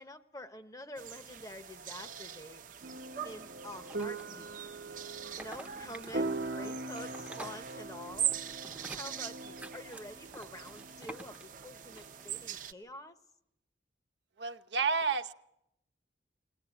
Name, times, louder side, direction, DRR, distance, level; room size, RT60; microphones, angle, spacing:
voice 1, 0.0-2.6 3.2-4.5 5.4-8.3 8.9-13.2, left 1 dB, 20° left, 9 dB, 1.0 m, -47 dB
sound 1, 1.0-12.7, right 10 dB, 45° right, 0.8 m, -42 dB
sound 2, 2.8-12.5, right 2 dB, 70° right, 1.1 m, -42 dB
sound 3, 3.7-4.6 5.2-12.3, right 1 dB, 10° right, 0.8 m, -50 dB
voice 2, 14.4-15.3, right 5 dB, 85° right, 6 dB, 0.9 m, -30 dB
22.0 x 19.0 x 9.9 m, 0.82 s
head